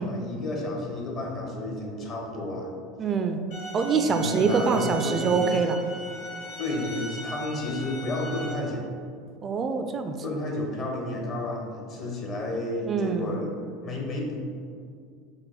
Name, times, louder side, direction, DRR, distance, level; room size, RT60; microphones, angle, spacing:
voice 1, 0.0-2.7 4.1-5.5 6.6-8.9 10.2-14.4, left 1 dB, 45° left, -1 dB, 1.2 m, -31 dB
voice 2, 3.0-3.4 3.7-5.8 9.4-10.2 12.9-13.3, right 5 dB, 35° right, 7 dB, 0.3 m, -25 dB
sound 1, 3.5-8.5, right 1 dB, 65° left, 1.4 m, -38 dB
4.6 x 2.9 x 3.9 m, 2.2 s
hypercardioid pair, 80°, 0 cm